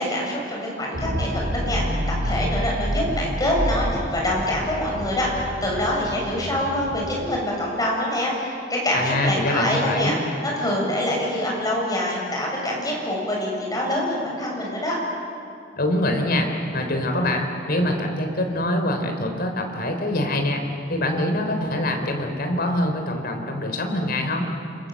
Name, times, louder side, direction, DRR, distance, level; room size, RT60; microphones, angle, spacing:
voice 1, 0.0-10.2 10.4-15.0, left 1 dB, 20° left, -2 dB, 7.6 m, -25 dB
sound 1, 0.9-7.4, equal, 60° right, 2.7 m, -28 dB
voice 2, 8.9-10.2 15.8-20.6 20.9-24.5, left 1 dB, 55° left, 4 dB, 4.0 m, -24 dB
28.5 x 26.5 x 7.8 m, 2.6 s
head